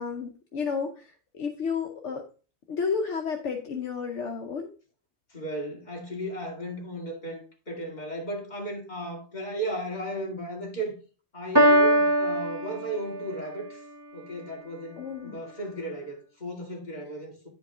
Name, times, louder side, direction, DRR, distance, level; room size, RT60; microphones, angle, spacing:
voice 1, 0.0-2.3 2.7-4.7 15.0-15.4, left 5 dB, 75° left, 1.2 m, -32 dB
voice 2, 5.3-10.9 11.3-13.8 14.1-17.5, right 1 dB, 35° left, 2.4 m, -35 dB
Piano, 11.5-13.5, right 1 dB, 20° right, 1.1 m, -22 dB
10.0 x 5.2 x 3.6 m
omnidirectional pair, 1.2 m